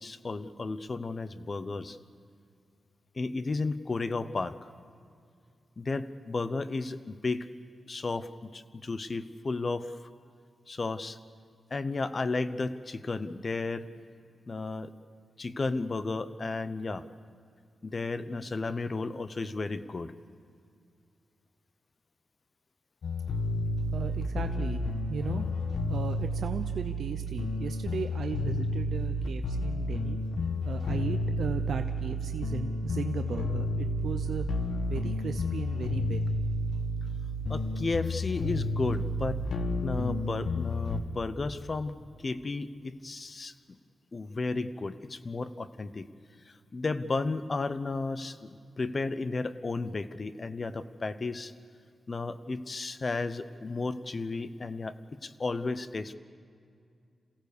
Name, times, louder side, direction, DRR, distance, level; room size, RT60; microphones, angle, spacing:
voice 1, 0.0-2.0 3.1-4.7 5.8-7.5 7.9-10.1 10.7-11.2 11.7-13.9 14.5-14.9 15.4-17.1 17.8-20.1 37.5-39.4 39.8-43.8 44.1-46.1 46.4-51.5 52.1-56.1, left 3 dB, 35° left, 13 dB, 0.8 m, -33 dB
sound 1, 23.0-41.0, left 1 dB, 75° left, 1.4 m, -31 dB
voice 2, 23.9-25.4 25.9-30.2 30.6-34.5 34.9-36.2, right 6 dB, 80° right, 7 dB, 0.7 m, -36 dB
27.5 x 16.5 x 6.8 m, 2.3 s
wide cardioid pair, 140°, 0 cm